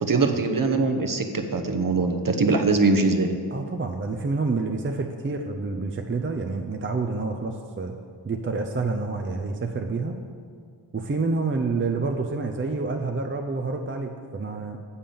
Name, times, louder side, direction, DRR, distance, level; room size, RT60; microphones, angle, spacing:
voice 1, 0.0-3.3, right 3 dB, 45° right, 5 dB, 0.9 m, -22 dB
voice 2, 3.5-8.0 8.2-10.2 10.9-14.8, right 3 dB, 25° right, 4 dB, 0.6 m, -28 dB
7.2 x 5.7 x 6.9 m, 2.1 s
cardioid pair, 45°, 45 cm